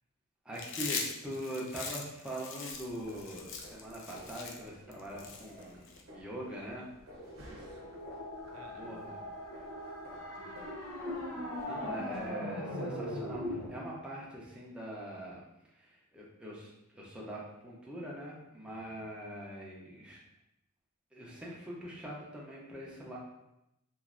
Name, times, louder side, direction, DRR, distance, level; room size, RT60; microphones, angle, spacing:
voice 1, 0.4-6.9 8.7-9.2 11.6-15.4 15.7-20.2 21.1-23.2, equal, 5° right, -5 dB, 0.6 m, -43 dB
Chewing mastication, 0.5-6.0, left 5 dB, 60° left, 0.4 m, -41 dB
sound 1, 2.7-12.3, equal, 65° right, 0.8 m, -55 dB
sound 2, 7.1-13.7, left 1 dB, 85° left, 0.7 m, -40 dB
voice 2, 7.4-8.0 8.5-9.3 10.3-10.8 11.1-11.5 18.7-19.1, right 2 dB, 85° right, 3 dB, 0.4 m, -59 dB
3.1 x 2.5 x 2.5 m, 0.86 s
head